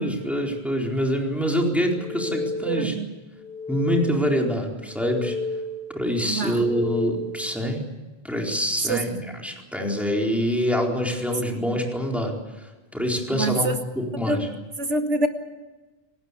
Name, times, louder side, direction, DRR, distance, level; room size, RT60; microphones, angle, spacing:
voice 1, 0.0-3.0 3.7-5.4 5.9-7.9 8.2-14.5, equal, ahead, 4.3 m, -25 dB
sound 1, 1.9-3.0 3.4-4.5 4.9-6.0 6.4-7.6, left 2 dB, 50° left, 2.7 m, -32 dB
voice 2, 2.7-3.1 6.3-6.6 8.9-9.0 11.7-11.8 13.3-13.8 14.3-14.5 14.8-15.3, right 3 dB, 80° right, 2.4 m, -25 dB
28.0 x 18.5 x 8.4 m
omnidirectional pair, 1.2 m